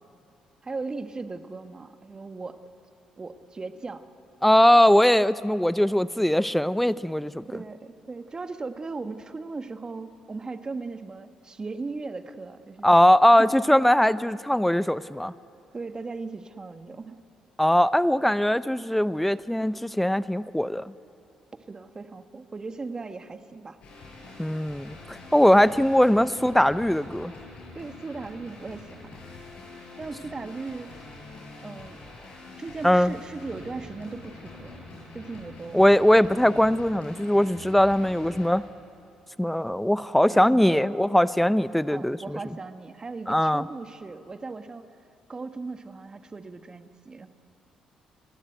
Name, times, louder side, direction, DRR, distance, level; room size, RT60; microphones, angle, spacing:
voice 1, 0.6-2.6 3.2-4.0 7.5-13.0 13.4-13.5 15.7-17.2 21.7-23.8 27.7-29.2 30.0-31.1 31.6-32.0 32.6-34.9 35.1-35.9 40.3-40.9 41.9-44.9 45.3-47.3, right 3 dB, 35° right, 9 dB, 1.4 m, -37 dB
voice 2, 4.4-7.4 12.8-15.3 17.6-20.9 24.4-27.3 32.8-33.1 35.7-38.6 39.4-42.4 43.3-43.7, equal, 5° left, 17 dB, 0.6 m, -21 dB
sound 1, 23.8-38.5, left 3 dB, 65° left, 7.7 m, -45 dB
30.0 x 12.5 x 9.2 m, 2.7 s
hypercardioid pair, 55°, 2 cm